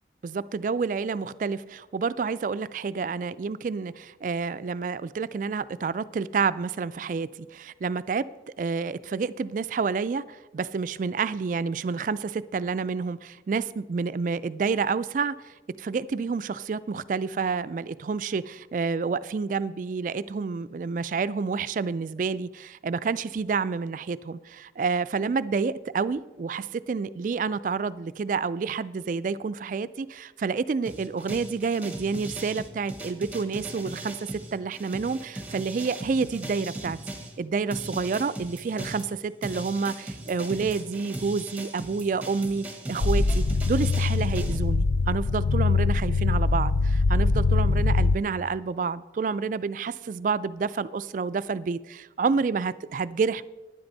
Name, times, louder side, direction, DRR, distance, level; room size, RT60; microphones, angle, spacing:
voice 1, 0.2-8.3 8.6-37.0 37.4-53.4, right 5 dB, 45° right, 16 dB, 0.3 m, -29 dB
sound 1, 30.9-37.3 37.7-44.6, right 1 dB, 10° right, 0.9 m, -38 dB
sound 2, 43.0-48.2, left 3 dB, 90° left, 0.5 m, -23 dB
11.5 x 10.0 x 4.0 m, 1.1 s
head